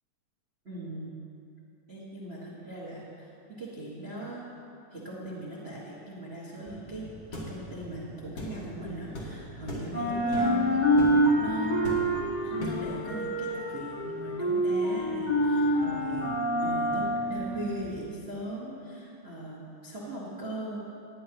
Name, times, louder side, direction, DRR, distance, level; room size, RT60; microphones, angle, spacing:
voice 1, 0.6-1.1 1.9-3.3 3.6-4.5 4.9-7.1 7.3-10.8 11.3-11.9 12.4-16.3 16.6-20.8, right 2 dB, 30° right, -6 dB, 1.2 m, -39 dB
sound 1, 6.7-9.5 9.8-18.0, equal, 20° left, 1.3 m, -27 dB
sound 2, 7.3-7.5 8.4-8.6 9.1-9.3 9.7-9.9 10.3-10.6 11.0-11.2 11.8-12.2 12.6-12.9, left 1 dB, 50° left, 2.9 m, -37 dB
19.0 x 10.5 x 3.0 m, 2.6 s
omnidirectional pair, 3.8 m